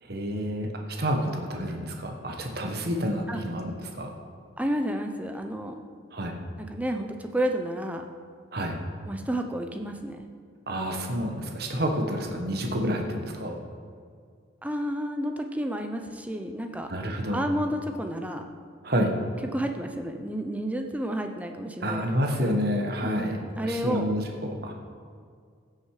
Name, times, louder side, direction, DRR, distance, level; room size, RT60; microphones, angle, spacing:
voice 1, 0.0-4.1 6.1-6.4 8.5-8.8 10.7-13.6 16.9-17.4 18.8-19.2 21.8-24.7, equal, 50° right, 2 dB, 1.2 m, -29 dB
voice 2, 4.6-5.8 6.6-8.0 9.1-10.3 14.6-16.9 17.3-18.4 19.5-22.4 23.0-24.1, equal, 5° right, 5 dB, 0.6 m, -31 dB
15.5 x 6.5 x 4.9 m, 2.1 s
head